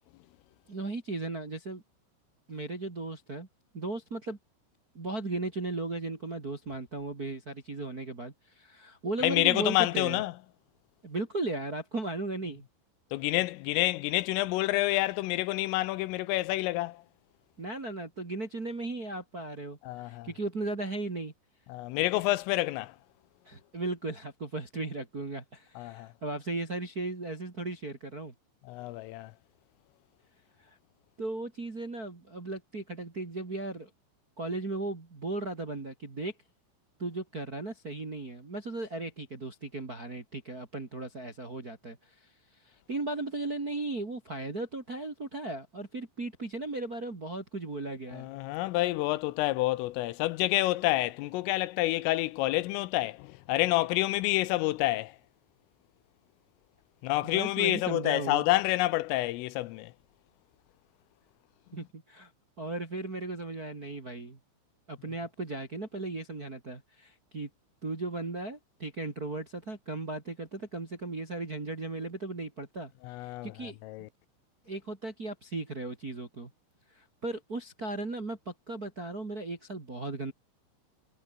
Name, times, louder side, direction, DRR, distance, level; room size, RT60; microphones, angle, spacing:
voice 1, 0.7-1.8 2.5-3.5 3.7-4.4 4.9-10.2 11.0-12.6 17.6-21.3 23.5-28.3 30.6-30.7 31.2-33.9 34.4-36.3 37.0-42.0 42.6-48.3 57.2-58.4 61.7-62.3 62.6-64.4 64.9-67.5 67.8-72.9 73.2-73.8 74.7-76.5 76.9-80.3, right 2 dB, 30° right, 1.8 m, -36 dB
voice 2, 9.2-10.3 13.1-17.0 19.8-20.3 21.7-23.0 25.8-26.1 28.7-29.3 48.1-55.2 57.0-59.9 73.0-74.1, left 18 dB, 80° left, 3.3 m, -28 dB
omnidirectional pair, 6.0 m